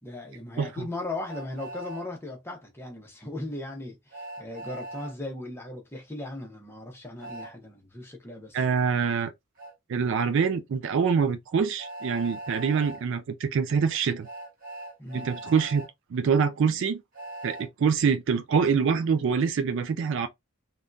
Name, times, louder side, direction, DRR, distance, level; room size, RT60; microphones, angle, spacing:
voice 1, 0.0-8.6 15.0-15.3, left 2 dB, 10° left, 0.8 m, -38 dB
Train, 1.3-2.1 4.1-5.1 7.2-7.5 9.6-9.7 11.8-13.0 14.2-15.9 17.1-17.7, right 1 dB, 40° right, 1.1 m, -40 dB
voice 2, 8.5-9.3 9.9-14.3 15.1-17.0 17.4-20.3, right 6 dB, 55° right, 0.3 m, -25 dB
3.5 x 2.3 x 2.5 m
head